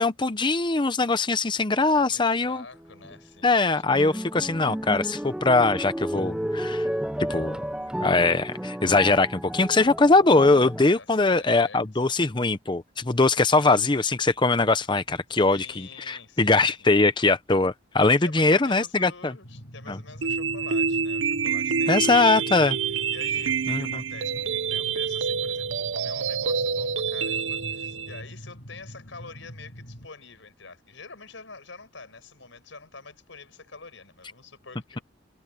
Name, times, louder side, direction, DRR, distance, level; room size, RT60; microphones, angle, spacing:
voice 1, 0.0-2.6 3.4-6.9 7.2-7.6 8.0-19.3 19.9-20.0 21.9-22.8 23.7-24.0, left 3 dB, 25° left, 0.8 m, -21 dB
voice 2, 1.9-4.2 10.7-12.0 13.5-13.8 15.3-17.0 18.2-22.7 23.1-35.0, left 4 dB, 80° left, 5.2 m, -46 dB
sound 1, 2.8-3.2 3.7-10.8, equal, 5° right, 0.4 m, -32 dB
sound 2, 19.4-30.1, equal, 55° left, 2.5 m, -44 dB
sound 3, 20.2-28.2, right 6 dB, 80° right, 0.7 m, -27 dB
head